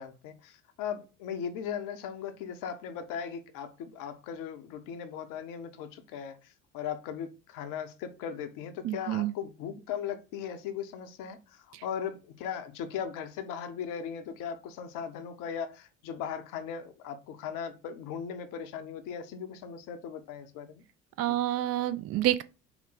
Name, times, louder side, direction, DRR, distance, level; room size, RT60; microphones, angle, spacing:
voice 1, 0.0-20.8 21.2-21.4, left 8 dB, 60° left, 0.8 m, -38 dB
voice 2, 8.8-9.3 11.7-11.8 21.2-22.4, right 14 dB, 40° right, 0.4 m, -28 dB
5.8 x 2.1 x 4.0 m
hypercardioid pair, 60°, 36 cm